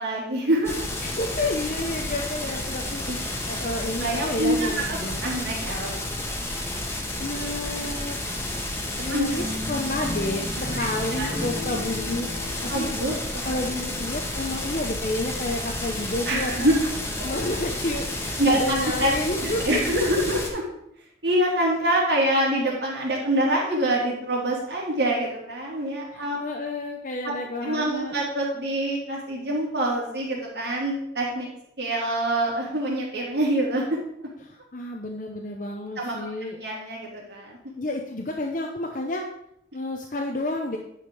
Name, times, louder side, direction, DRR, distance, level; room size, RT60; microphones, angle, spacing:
voice 1, 0.0-0.9 3.1-3.2 4.0-5.9 9.0-9.3 10.7-10.8 11.2-11.3 12.7-13.1 16.2-16.9 18.4-19.1 19.4-20.6 21.2-26.4 27.2-27.3 27.6-31.5 31.8-33.8 36.0-36.1 36.6-37.7, right 1 dB, 70° right, -3 dB, 3.0 m, -25 dB
sound 1, 0.6-20.5, left 1 dB, 15° left, 1.3 m, -31 dB
voice 2, 1.0-5.2 6.9-8.2 9.0-12.3 12.6-12.9 13.4-16.7 17.2-20.0 26.1-28.2 34.4-36.6 37.8-39.2 39.7-40.8, left 2 dB, 45° left, 1 dB, 0.8 m, -30 dB
sound 2, 9.3-14.4, left 1 dB, 15° right, 1.3 m, -36 dB
10.0 x 5.1 x 5.3 m, 0.75 s
head